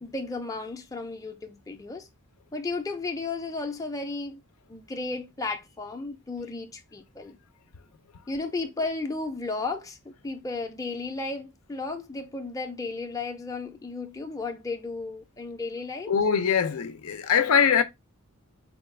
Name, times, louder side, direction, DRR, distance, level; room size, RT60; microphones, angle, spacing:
voice 1, 0.0-2.1 2.5-4.4 4.7-7.4 8.3-16.1, left 3 dB, 15° left, 0.5 m, -34 dB
voice 2, 16.1-17.8, left 7 dB, 85° left, 0.5 m, -22 dB
4.2 x 2.3 x 3.2 m
head